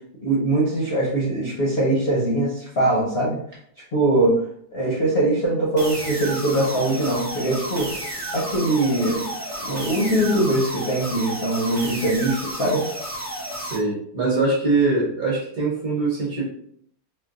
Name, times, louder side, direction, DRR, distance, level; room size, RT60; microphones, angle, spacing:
voice 1, 0.2-3.4 3.9-4.3 4.7-7.9 8.3-9.2 9.6-12.8, right 1 dB, 55° left, -6 dB, 0.7 m, -22 dB
sound 1, 5.8-13.8, right 1 dB, 30° right, 0.6 m, -32 dB
voice 2, 13.6-16.4, right 3 dB, 55° right, -5 dB, 1.2 m, -22 dB
4.4 x 2.2 x 2.5 m, 0.65 s
omnidirectional pair, 2.3 m